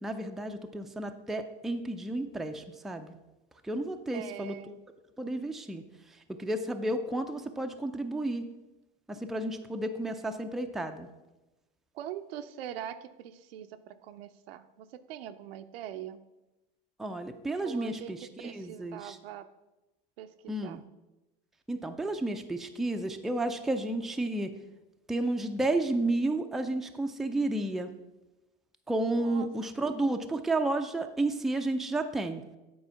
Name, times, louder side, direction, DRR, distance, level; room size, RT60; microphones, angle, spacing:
voice 1, 0.0-3.2 3.6-4.6 5.2-5.8 6.4-8.5 9.1-11.1 17.0-19.2 20.5-20.8 21.7-24.5 25.1-27.9 28.9-32.4, right 2 dB, ahead, 6 dB, 0.4 m, -32 dB
voice 2, 4.1-4.8 11.9-16.2 17.6-19.5 20.2-20.8 29.1-29.5, right 11 dB, 80° right, 10 dB, 0.6 m, -43 dB
8.7 x 4.3 x 5.7 m, 1.0 s
hypercardioid pair, 105°, 29 cm